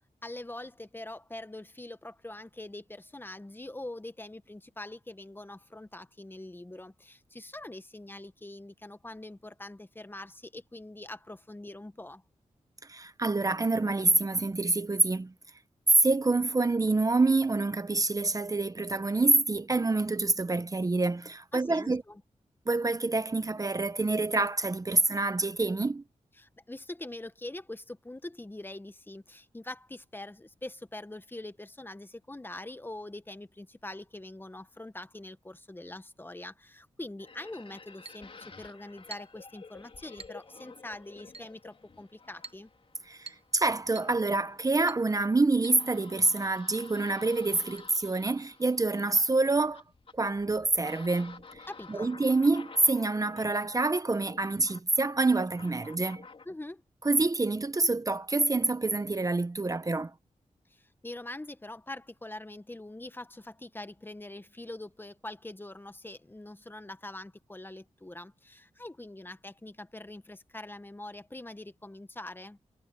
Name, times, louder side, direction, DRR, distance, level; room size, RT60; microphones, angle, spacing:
voice 1, 0.2-12.2 21.5-22.2 26.4-42.7 51.7-52.1 56.4-56.8 60.7-72.6, left 1 dB, 15° left, 1.2 m, -44 dB
voice 2, 12.9-15.3 16.0-22.0 22.7-26.0 43.1-49.8 50.1-51.6 51.9-56.2 57.0-60.1, right 3 dB, 30° right, 0.9 m, -27 dB
sound 1, 37.2-56.5, left 4 dB, 50° left, 3.9 m, -51 dB
Chink clink, 38.0-38.3 39.1-39.4 40.2-40.4 41.3-41.6 42.4-42.7 43.3-43.5 43.9-44.2 44.9-45.1 45.6-45.8 46.1-46.2 46.7-46.9 47.8-47.9, right 4 dB, 55° right, 1.3 m, -47 dB
wide cardioid pair, 80°, 12 cm